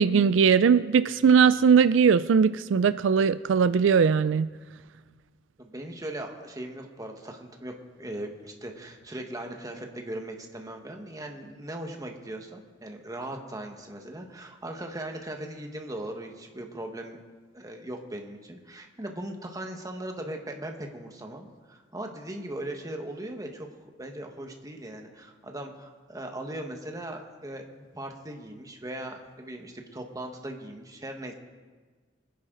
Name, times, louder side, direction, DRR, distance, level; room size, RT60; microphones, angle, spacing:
voice 1, 0.0-4.5, right 6 dB, 90° right, 14 dB, 0.4 m, -20 dB
voice 2, 5.6-17.2 17.5-23.7 24.0-31.3, right 1 dB, 20° right, 3 dB, 1.5 m, -39 dB
25.0 x 10.5 x 3.9 m, 1.4 s
head